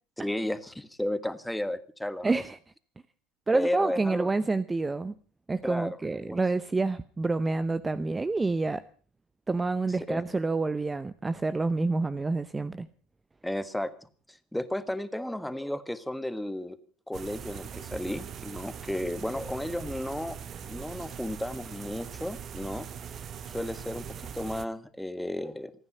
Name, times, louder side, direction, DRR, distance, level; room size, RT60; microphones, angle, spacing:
voice 1, 0.2-2.4 3.5-4.3 5.6-6.4 10.1-10.2 13.4-13.9 14.3-16.8 17.1-20.4 20.6-22.9 23.5-24.0 24.3-25.7, left 1 dB, 5° left, 12 dB, 1.5 m, -33 dB
voice 2, 2.2-2.6 3.5-5.1 5.5-8.8 9.5-12.9, right 3 dB, 15° right, 14 dB, 0.7 m, -28 dB
sound 1, 17.1-24.7, right 8 dB, 40° right, 1.3 m, -41 dB
27.0 x 9.7 x 5.5 m, 0.41 s
hypercardioid pair, 80°, 0 cm